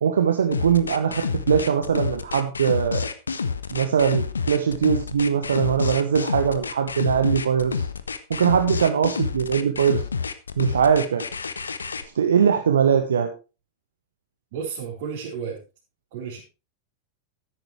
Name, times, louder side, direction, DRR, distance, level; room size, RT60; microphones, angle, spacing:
voice 1, 0.0-3.0 3.7-7.8 8.3-10.0 10.6-11.2 12.1-13.3, right 7 dB, 65° right, 6 dB, 1.3 m, -21 dB
sound 1, 0.5-12.0, left 5 dB, 75° left, 1.0 m, -28 dB
voice 2, 14.5-15.6 16.1-16.4, right 6 dB, 50° right, -5 dB, 4.5 m, -32 dB
13.5 x 10.5 x 3.3 m, 0.31 s
figure-of-eight pair, 90°, 0 cm